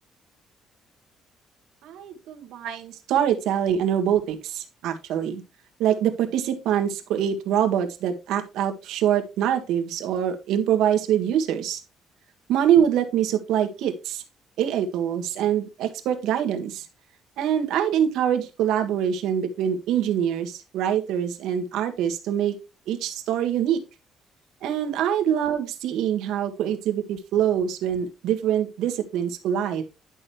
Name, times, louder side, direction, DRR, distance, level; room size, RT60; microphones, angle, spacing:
voice 1, 1.8-5.4 5.8-11.8 12.5-14.2 14.6-16.9 17.4-22.5 22.9-23.8 24.6-29.8, right 9 dB, 80° right, 5 dB, 1.7 m, -24 dB
11.0 x 6.4 x 3.1 m, 0.27 s
cardioid pair, 165°, 0 cm